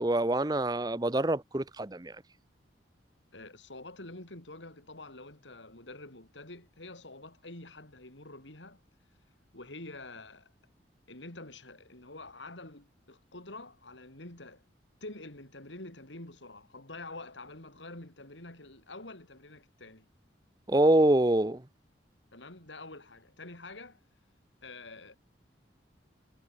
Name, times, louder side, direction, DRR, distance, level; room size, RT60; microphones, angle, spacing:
voice 1, 0.0-2.1 20.7-21.6, right 1 dB, 20° right, 0.8 m, -25 dB
voice 2, 3.3-8.8 9.5-10.5 11.1-14.6 15.0-20.1 22.3-24.0 24.6-25.2, left 2 dB, 80° left, 4.7 m, -47 dB
head